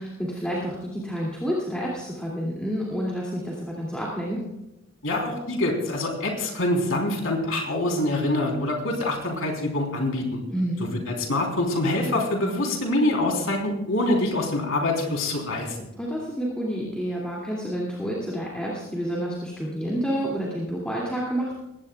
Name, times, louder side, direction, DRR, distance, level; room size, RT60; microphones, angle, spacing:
voice 1, 0.0-4.4 10.5-10.9 16.0-21.6, equal, 5° left, -5 dB, 2.5 m, -29 dB
voice 2, 5.0-10.4 11.1-15.9, left 1 dB, 65° left, 0 dB, 3.7 m, -25 dB
20.5 x 17.0 x 2.4 m, 0.91 s
head